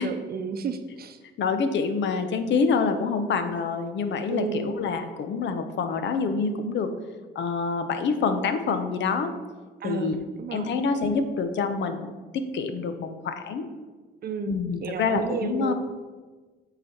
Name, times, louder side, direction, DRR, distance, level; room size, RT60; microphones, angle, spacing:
voice 1, 0.0-1.2 4.3-4.8 9.8-10.7 14.2-15.7, right 5 dB, 50° right, 8 dB, 0.7 m, -32 dB
voice 2, 1.4-6.9 7.3-9.3 9.8-10.2 10.5-13.7 14.5-15.7, left 5 dB, 65° left, 8 dB, 0.7 m, -26 dB
8.0 x 4.1 x 4.4 m, 1.3 s
cardioid pair, 90°, 20 cm